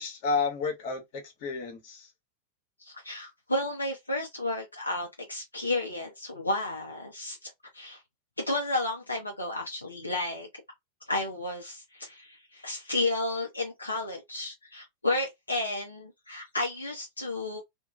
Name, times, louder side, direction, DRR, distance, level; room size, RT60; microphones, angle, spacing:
voice 1, 0.0-2.1, left 4 dB, 50° left, 1.1 m, -31 dB
voice 2, 2.8-8.0 8.4-10.5 11.1-17.6, left 2 dB, 80° left, 0.5 m, -32 dB
2.9 x 2.2 x 2.4 m
figure-of-eight pair, 90°, 0 cm